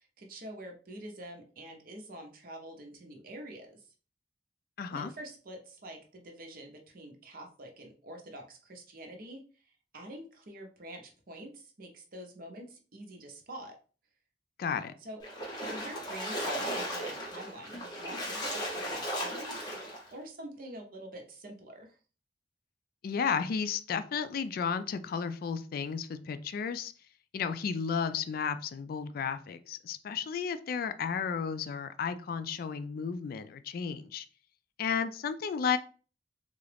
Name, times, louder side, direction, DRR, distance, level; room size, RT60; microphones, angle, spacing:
voice 1, 0.0-3.9 4.9-13.7 15.0-15.2 15.7-22.0, right 1 dB, 55° right, 3 dB, 0.8 m, -46 dB
voice 2, 4.8-5.1 14.6-14.9 23.0-26.9 27.3-34.2 34.8-35.8, left 6 dB, 55° left, 12 dB, 0.3 m, -33 dB
Splash splatter, 15.2-20.1, equal, 25° left, 1.2 m, -36 dB
3.7 x 2.3 x 3.3 m, 0.38 s
head